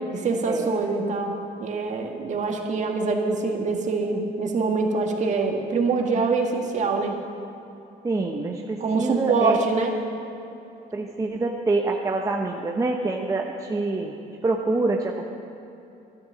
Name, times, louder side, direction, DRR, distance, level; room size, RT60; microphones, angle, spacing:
voice 1, 0.1-7.2 8.8-10.0, right 4 dB, 45° right, 2 dB, 1.7 m, -24 dB
voice 2, 8.0-9.6 10.9-14.1 14.4-15.2, right 3 dB, 20° right, 1 dB, 0.9 m, -26 dB
13.0 x 10.0 x 7.6 m, 2.8 s
cardioid pair, 110°, 17 cm